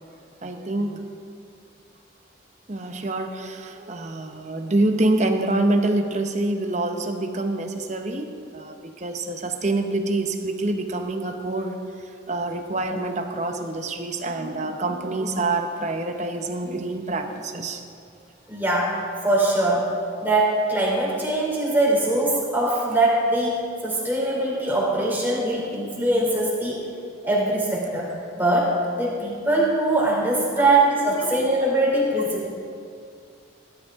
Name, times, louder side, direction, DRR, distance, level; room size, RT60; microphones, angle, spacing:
voice 1, 0.4-1.0 2.7-11.8 12.3-17.8 30.6-30.7 31.1-31.4 32.3-32.5, right 2 dB, 35° right, 5 dB, 0.9 m, -26 dB
voice 2, 18.5-18.9 19.2-19.9 20.2-26.8 27.2-32.5, right 2 dB, 10° right, -4 dB, 2.9 m, -22 dB
17.5 x 11.5 x 3.6 m, 2.4 s
head